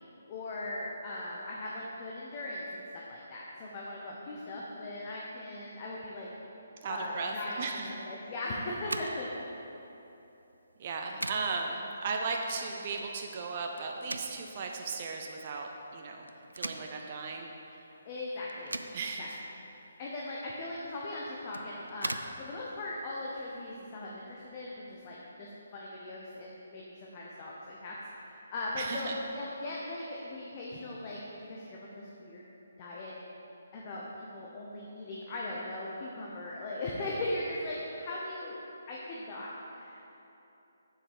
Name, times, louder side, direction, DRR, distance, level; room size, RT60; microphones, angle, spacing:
voice 1, 0.3-2.8 3.1-6.3 6.9-7.7 8.0-9.3 18.0-18.8 19.2-19.3 20.0-32.4 32.8-33.1 33.7-38.6 38.9-40.1, left 1 dB, 30° left, -4 dB, 1.0 m, -39 dB
voice 2, 6.8-7.9 10.8-16.3 16.5-17.8 18.9-19.4 28.8-29.2, right 4 dB, 35° right, 2 dB, 0.6 m, -36 dB
sound 1, 8.8-23.7, right 1 dB, 80° right, 0.4 m, -44 dB
7.3 x 6.6 x 5.0 m, 3.0 s
figure-of-eight pair, 140°, 0 cm